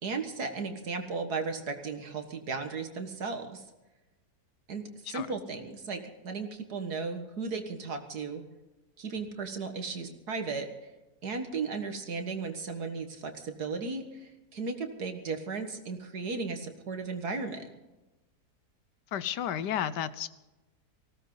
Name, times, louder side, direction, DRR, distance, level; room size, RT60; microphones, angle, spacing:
voice 1, 0.0-3.6 4.7-8.4 9.0-10.7 11.2-17.7, right 4 dB, 70° right, 6 dB, 2.1 m, -35 dB
voice 2, 19.1-20.3, left 10 dB, 85° left, 15 dB, 1.4 m, -32 dB
19.5 x 16.5 x 4.0 m, 1.1 s
omnidirectional pair, 1.8 m